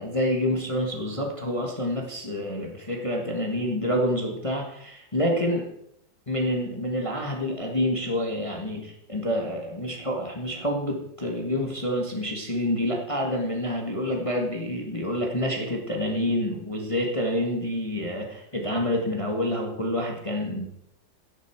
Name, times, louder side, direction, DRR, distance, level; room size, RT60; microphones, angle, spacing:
voice 1, 0.0-5.7 6.3-20.7, left 1 dB, 20° left, 1 dB, 1.4 m, -28 dB
12.5 x 10.5 x 4.5 m, 0.76 s
omnidirectional pair, 2.1 m